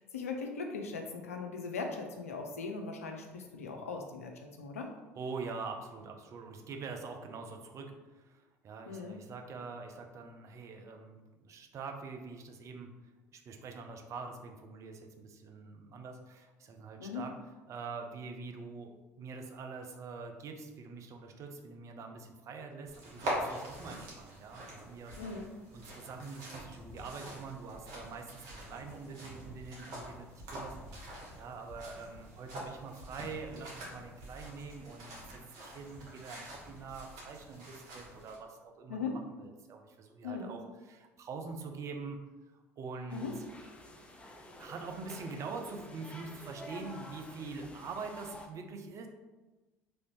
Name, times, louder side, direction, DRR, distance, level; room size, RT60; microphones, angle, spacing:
voice 1, 0.0-4.3 4.6-4.9 8.9-9.2 17.0-17.2 25.2-25.5 38.9-39.2 40.2-40.5 43.1-43.3, left 4 dB, 85° left, 3 dB, 0.4 m, -39 dB
voice 2, 5.1-12.9 13.3-17.3 17.7-25.1 25.7-42.2 42.5-43.3 44.6-49.1, right 4 dB, 45° right, 4 dB, 0.5 m, -44 dB
sound 1, 22.8-38.4, right 1 dB, 60° right, 1.2 m, -44 dB
sound 2, 43.1-48.5, left 1 dB, 15° left, 0.5 m, -49 dB
3.2 x 2.6 x 3.0 m, 1.2 s
hypercardioid pair, 65°, 7 cm